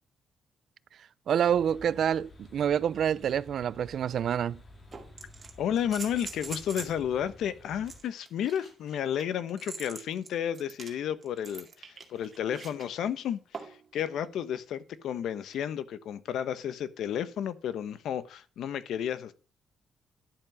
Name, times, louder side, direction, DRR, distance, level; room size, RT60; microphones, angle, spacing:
voice 1, 1.3-4.6, right 9 dB, 60° right, 0.5 m, -27 dB
sound 1, 1.5-8.0, left 2 dB, 30° left, 2.8 m, -52 dB
sound 2, 3.9-4.0 4.9-7.0 7.8-12.9 13.5-13.9 15.5-15.6, right 4 dB, 30° right, 2.2 m, -44 dB
voice 2, 5.6-19.3, left 9 dB, 80° left, 1.0 m, -32 dB
11.0 x 7.1 x 6.0 m
cardioid pair, 135°, 0 cm